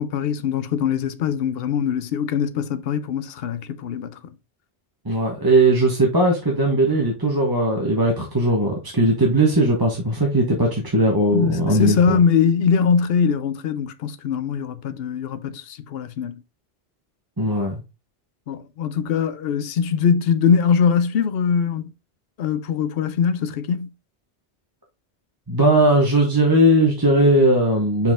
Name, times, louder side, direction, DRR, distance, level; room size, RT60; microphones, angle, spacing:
voice 1, 0.0-4.3 11.3-16.4 18.5-21.9 22.4-23.9, left 7 dB, 60° left, 0.8 m, -22 dB
voice 2, 5.0-12.2 17.4-17.8 25.5-28.1, right 1 dB, 20° right, 1.2 m, -18 dB
5.6 x 4.7 x 3.6 m
omnidirectional pair, 1.2 m